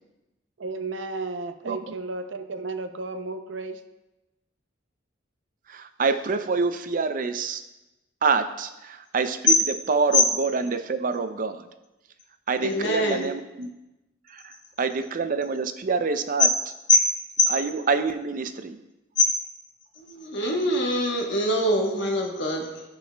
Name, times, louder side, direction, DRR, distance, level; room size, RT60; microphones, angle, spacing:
voice 1, 0.6-3.8, right 3 dB, 90° right, 8 dB, 0.6 m, -33 dB
voice 2, 5.7-7.6 8.2-11.7 12.5-13.7 14.3-16.5 17.5-18.8, right 4 dB, 50° right, 10 dB, 0.5 m, -26 dB
voice 3, 12.6-13.3 17.4-17.5 19.2-19.3 20.0-22.8, left 1 dB, 70° left, 0 dB, 1.1 m, -24 dB
15.5 x 5.5 x 2.2 m, 0.99 s
head